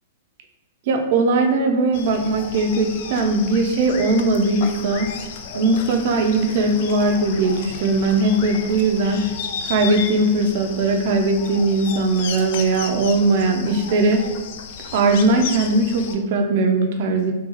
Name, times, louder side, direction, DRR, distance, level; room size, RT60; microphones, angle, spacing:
voice 1, 0.9-5.1 5.5-9.3 9.6-14.3 14.9-17.3, right 2 dB, 55° right, 4 dB, 0.5 m, -19 dB
sound 1, 1.9-16.2, left 6 dB, 55° left, 0.4 m, -34 dB
3.7 x 2.3 x 2.9 m, 1.1 s
hypercardioid pair, 110°, 0 cm